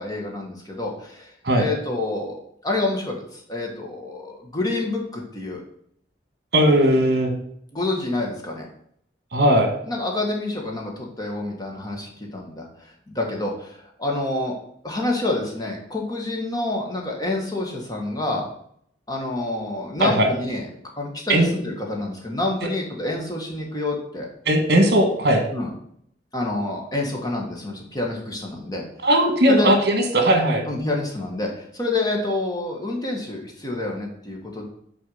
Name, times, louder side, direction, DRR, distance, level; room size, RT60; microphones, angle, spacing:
voice 1, 0.0-1.3 1.6-5.6 7.7-8.7 9.8-12.7 13.1-14.5 14.8-18.5 19.1-20.7 21.0-24.3 25.5-25.7 26.3-28.8 29.5-29.7 30.7-34.6, left 2 dB, 20° left, 0 dB, 1.6 m, -28 dB
voice 2, 6.5-7.3 9.3-9.7 20.0-20.3 21.3-21.5 24.4-25.4 29.0-30.6, right 1 dB, 60° right, 4 dB, 1.5 m, -18 dB
6.1 x 4.6 x 5.6 m, 0.68 s
head